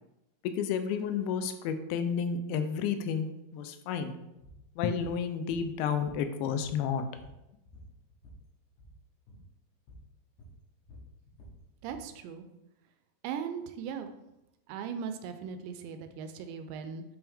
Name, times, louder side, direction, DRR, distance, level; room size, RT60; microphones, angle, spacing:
voice 1, 0.4-4.1 4.8-7.0, left 7 dB, 90° left, 8 dB, 2.9 m, -31 dB
sound 1, 4.4-4.6 5.0-5.2 5.5-6.3 6.6-8.4 8.7-9.0 9.3-9.5 9.9-10.1 10.4-12.1, equal, 65° left, 2.0 m, -51 dB
voice 2, 11.8-12.5 13.2-14.1 14.7-17.0, right 7 dB, 85° right, 8 dB, 2.8 m, -38 dB
8.6 x 3.5 x 3.5 m, 0.91 s
omnidirectional pair, 5.1 m